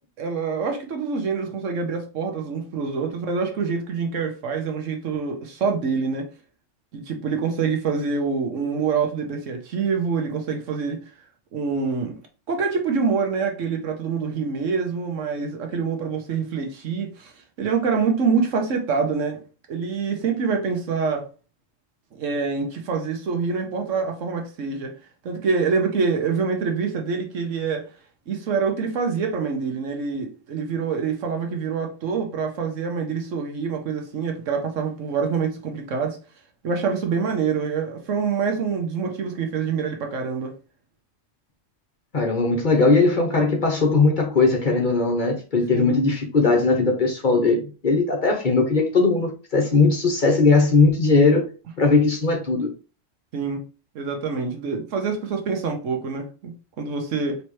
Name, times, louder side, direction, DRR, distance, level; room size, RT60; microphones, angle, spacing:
voice 1, 0.2-6.3 6.9-11.0 11.5-12.2 12.5-17.3 17.6-19.4 19.7-21.3 22.1-24.9 25.2-27.9 28.3-36.2 36.6-40.5 45.7-46.0 53.3-53.6 53.9-57.4, right 5 dB, 75° right, 1.2 m, -26 dB
voice 2, 42.1-51.5 51.8-52.7, left 3 dB, 40° left, 1.0 m, -19 dB
4.3 x 3.3 x 3.1 m
omnidirectional pair, 1.3 m